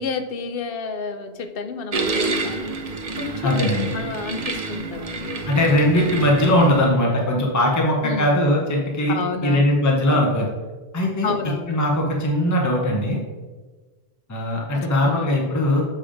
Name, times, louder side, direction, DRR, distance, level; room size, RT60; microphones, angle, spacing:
voice 1, 0.0-2.8 3.2-3.6 3.9-5.4 8.0-8.4 9.1-9.6 10.1-10.3 11.2-11.8 14.7-15.3, left 5 dB, 65° left, 9 dB, 0.8 m, -30 dB
sound 1, 1.9-6.9, right 3 dB, 45° right, 0.7 m, -28 dB
voice 2, 3.4-3.9 5.5-9.1 9.4-10.5 10.9-11.3 11.7-13.2 14.3-15.8, left 1 dB, 20° left, -1 dB, 0.9 m, -20 dB
7.6 x 3.5 x 5.0 m, 1.3 s
omnidirectional pair, 1.0 m